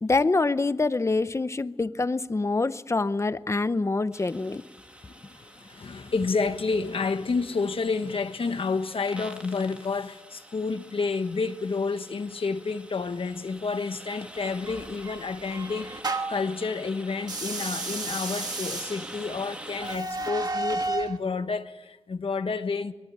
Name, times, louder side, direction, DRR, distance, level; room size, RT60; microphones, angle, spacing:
voice 1, 0.0-4.6, left 3 dB, 25° left, 0.7 m, -25 dB
sound 1, 4.1-20.0, right 1 dB, 10° right, 1.6 m, -46 dB
voice 2, 5.0-22.9, left 4 dB, 55° left, 1.2 m, -30 dB
sound 2, 14.7-16.5 17.2-21.2, right 3 dB, 35° right, 1.4 m, -33 dB
23.5 x 22.5 x 8.7 m
wide cardioid pair, 150°, 11 cm